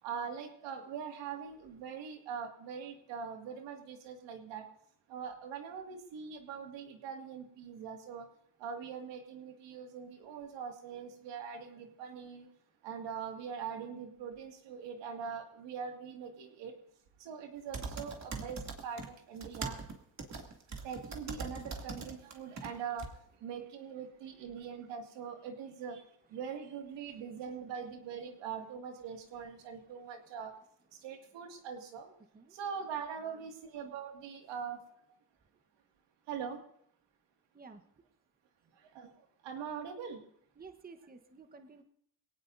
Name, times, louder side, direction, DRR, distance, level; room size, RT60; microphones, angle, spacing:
voice 1, 0.0-4.7 5.1-8.3 8.6-12.5 12.8-16.8 17.2-19.8 20.7-26.0 26.3-30.5 30.9-32.1 32.5-34.8 36.3-36.6 38.7-40.2, right 7 dB, 90° right, 3 dB, 2.3 m, -42 dB
sound 1, 17.7-19.1 19.3-22.7 23.0-23.1, right 4 dB, 40° right, 2.7 m, -41 dB
voice 2, 29.6-30.1 32.3-32.5 33.2-33.5 37.5-37.8 40.5-41.8, right 4 dB, 20° right, 6 dB, 1.2 m, -54 dB
21.5 x 18.0 x 2.7 m, 0.69 s
cardioid pair, 85°, 42 cm